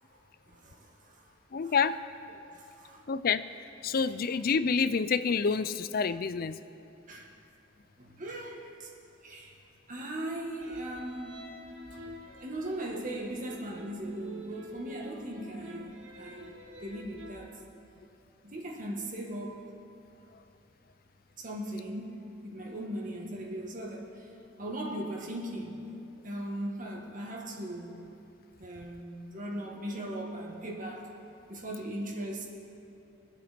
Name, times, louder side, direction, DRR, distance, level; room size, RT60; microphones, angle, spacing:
voice 1, 0.5-1.3 1.6-1.7 2.5-3.1 7.1-7.3 8.0-8.9 9.2-9.5 9.9-11.5 12.4-17.5 18.4-19.6 21.4-24.3 24.6-25.9 26.2-28.0 28.6-31.2 31.5-32.5, right 1 dB, 45° right, -1 dB, 1.8 m, -39 dB
voice 2, 1.5-2.0 2.3-2.4 3.1-3.5 3.8-6.6 12.3-12.4, left 5 dB, 50° left, 14 dB, 0.5 m, -28 dB
sound 1, 10.6-17.4, equal, 80° right, 3.5 m, -48 dB
23.0 x 8.1 x 5.2 m, 2.7 s
head